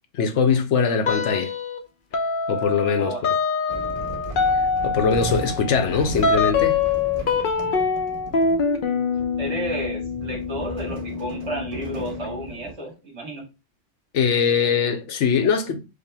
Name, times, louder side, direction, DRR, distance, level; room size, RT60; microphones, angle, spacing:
voice 1, 0.1-1.5 2.5-3.2 4.5-6.8 14.1-15.8, left 6 dB, 75° left, 1.0 m, -22 dB
sound 1, 1.0-1.8 2.1-12.5, left 5 dB, 55° left, 0.7 m, -25 dB
sound 2, 3.7-12.7, right 2 dB, 35° right, 0.7 m, -36 dB
voice 2, 9.4-13.5, right 1 dB, 65° right, 2.2 m, -32 dB
5.2 x 2.1 x 3.3 m
omnidirectional pair, 1.3 m